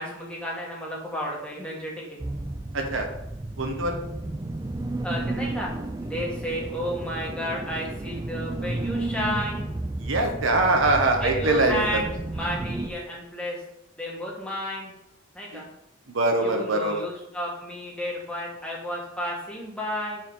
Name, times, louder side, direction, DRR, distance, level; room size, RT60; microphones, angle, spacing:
voice 1, 0.0-2.2 5.0-5.7 6.0-9.6 11.2-12.1 12.3-13.6 14.0-14.9 15.3-15.6 16.4-20.2, equal, 5° left, -3 dB, 1.4 m, -32 dB
sound 1, 2.2-12.9, right 2 dB, 15° right, 0.3 m, -32 dB
voice 2, 2.7-3.1 3.6-4.0 10.0-12.0 15.5-15.6 16.1-17.1, right 2 dB, 70° right, 2 dB, 1.1 m, -23 dB
4.9 x 4.7 x 5.4 m, 0.82 s
head